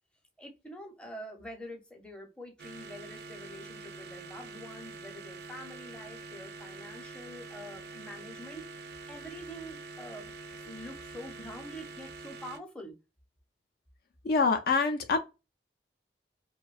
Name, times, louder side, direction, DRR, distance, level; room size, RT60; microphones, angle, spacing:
voice 1, 0.4-12.9, equal, 5° left, 0.6 m, -46 dB
sound 1, 2.6-12.6, right 3 dB, 60° right, 0.4 m, -45 dB
voice 2, 14.2-15.2, left 4 dB, 55° left, 0.4 m, -25 dB
2.6 x 2.1 x 2.3 m
head